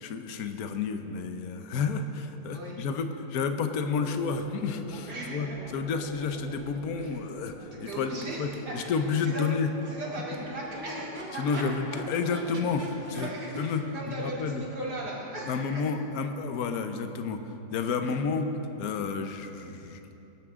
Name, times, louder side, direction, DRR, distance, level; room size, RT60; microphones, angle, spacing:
voice 1, 0.0-9.7 11.4-13.3 13.6-13.8 14.1-14.6 15.5-17.4 17.7-18.5 18.8-20.0, left 5 dB, 60° left, 7 dB, 1.2 m, -30 dB
voice 2, 2.5-2.9 5.1-5.6 7.0-7.2 7.7-9.4 9.9-11.6 13.1-15.9 18.0-18.2, right 1 dB, 65° right, -6 dB, 3.7 m, -38 dB
Crowd / Race car auto racing / Accelerating revving vroom, 3.6-17.5, right 1 dB, 30° right, 1.4 m, -44 dB
23.0 x 12.0 x 3.7 m, 3.0 s
omnidirectional pair, 1.9 m